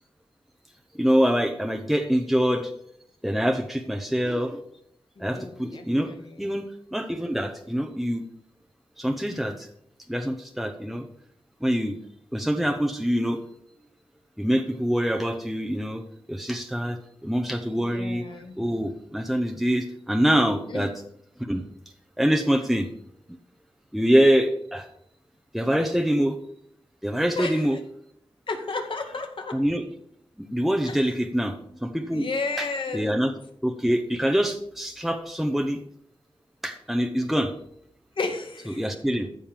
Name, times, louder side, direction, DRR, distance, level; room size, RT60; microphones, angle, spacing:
voice 1, 0.9-2.7 3.2-4.6 5.2-8.2 9.0-9.7 10.1-11.1 11.6-12.0 12.3-13.4 14.4-16.0 16.3-18.2 18.6-20.9 21.4-21.6 22.2-22.9 23.9-24.9 25.5-26.4 27.0-27.8 29.5-29.8 30.4-32.3 32.6-32.7 32.9-33.3 33.6-35.8 36.6-37.6 38.7-39.3, equal, ahead, 4 dB, 0.9 m, -25 dB
voice 2, 5.2-6.5 17.7-18.5 20.7-20.9 27.4-27.7 28.5-29.6 30.9-31.0 32.1-33.1 38.2-38.8, left 3 dB, 65° left, 3 dB, 2.2 m, -32 dB
14.0 x 5.4 x 7.4 m, 0.71 s
wide cardioid pair, 95°, 10 cm